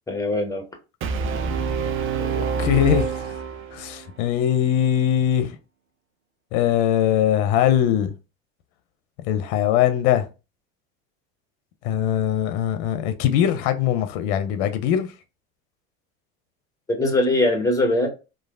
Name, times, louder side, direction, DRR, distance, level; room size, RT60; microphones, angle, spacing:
voice 1, 0.1-0.6 16.9-18.1, left 1 dB, 10° left, 0.9 m, -21 dB
Brass instrument, 1.0-4.1, right 5 dB, 40° right, 0.5 m, -26 dB
voice 2, 2.1-3.4 3.7-5.6 6.5-8.1 9.2-10.3 11.8-15.1, left 10 dB, 70° left, 0.5 m, -21 dB
3.1 x 2.3 x 2.3 m
supercardioid pair, 100°, 32 cm